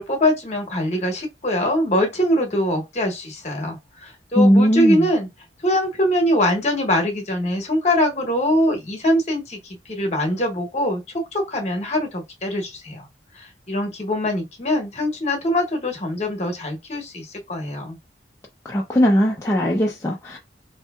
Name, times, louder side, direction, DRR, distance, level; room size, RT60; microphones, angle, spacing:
voice 1, 0.0-5.3 5.6-13.1 13.3-18.0, left 1 dB, 40° left, 1.0 m, -23 dB
voice 2, 4.4-5.1 18.6-20.4, equal, 15° left, 0.4 m, -18 dB
4.3 x 2.7 x 2.3 m
head